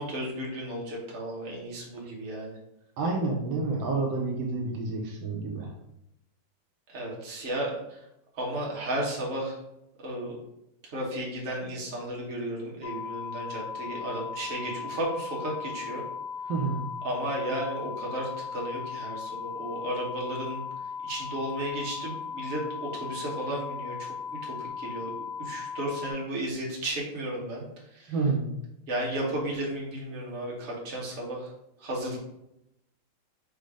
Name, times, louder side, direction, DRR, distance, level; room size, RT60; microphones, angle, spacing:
voice 1, 0.0-2.5 6.9-8.0 8.3-9.6 10.0-10.4 10.8-16.0 17.0-20.6 21.0-24.1 24.4-25.1 25.4-27.6 27.9-28.3 28.9-31.5 31.8-32.2, right 1 dB, 40° right, -3 dB, 1.3 m, -34 dB
voice 2, 3.0-5.7 16.5-16.9 28.1-28.5, right 3 dB, 80° right, 0 dB, 1.5 m, -29 dB
sound 1, 12.8-26.1, left 6 dB, 75° left, 1.3 m, -37 dB
5.3 x 2.0 x 4.8 m, 0.85 s
omnidirectional pair, 2.1 m